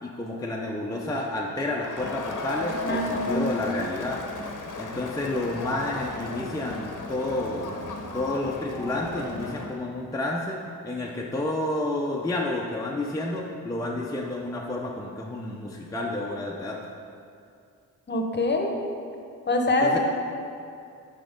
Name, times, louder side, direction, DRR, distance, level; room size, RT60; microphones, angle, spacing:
voice 1, 0.0-4.2 4.8-7.7 8.1-10.6 10.8-16.8 19.8-20.0, left 2 dB, 10° left, -2 dB, 0.5 m, -30 dB
Crowd, 1.8-9.8, left 3 dB, 60° left, 0.8 m, -35 dB
voice 2, 2.8-3.5 18.1-18.7 19.5-20.0, left 2 dB, 30° left, 2 dB, 0.8 m, -24 dB
6.1 x 4.4 x 5.1 m, 2.5 s
cardioid pair, 80°, 35 cm